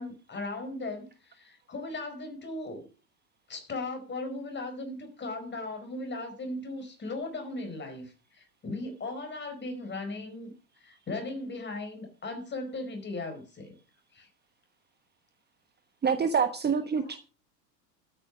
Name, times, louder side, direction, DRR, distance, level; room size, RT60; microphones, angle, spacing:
voice 1, 0.0-2.8 3.5-10.5 10.8-13.7 14.1-14.3 17.0-17.2, left 2 dB, 20° left, 6 dB, 4.7 m, -37 dB
voice 2, 16.0-17.2, right 6 dB, 20° right, 9 dB, 1.2 m, -26 dB
12.5 x 9.0 x 6.2 m, 0.36 s
hypercardioid pair, 90°, 50 cm